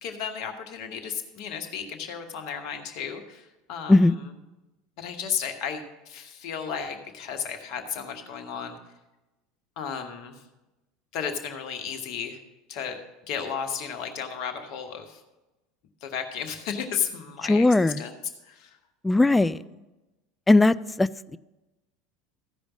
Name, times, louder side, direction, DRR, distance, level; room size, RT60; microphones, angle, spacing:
voice 1, 0.0-4.0 5.0-8.8 9.8-10.4 11.1-12.4 12.7-13.0 13.3-15.2 16.0-18.1 18.4-18.8 19.3-19.4, left 7 dB, 55° left, 1.3 m, -34 dB
voice 2, 17.5-18.0 19.0-19.6 20.5-21.4, left 2 dB, 10° left, 0.3 m, -19 dB
14.5 x 5.1 x 6.1 m
figure-of-eight pair, 75°, 0 cm